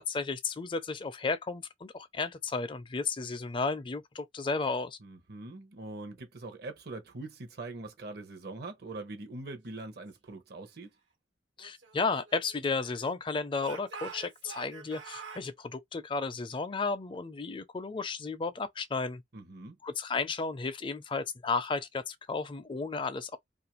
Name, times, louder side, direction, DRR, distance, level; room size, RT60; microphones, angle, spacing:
voice 1, 0.0-5.0 11.6-19.2 19.8-23.4, left 4 dB, 25° left, 0.4 m, -33 dB
voice 2, 5.0-10.9 19.3-19.8, right 2 dB, 60° right, 0.8 m, -43 dB
Speech / Shout, 11.6-13.1 13.6-15.5, right 6 dB, 85° right, 1.2 m, -47 dB
2.5 x 2.5 x 2.9 m
head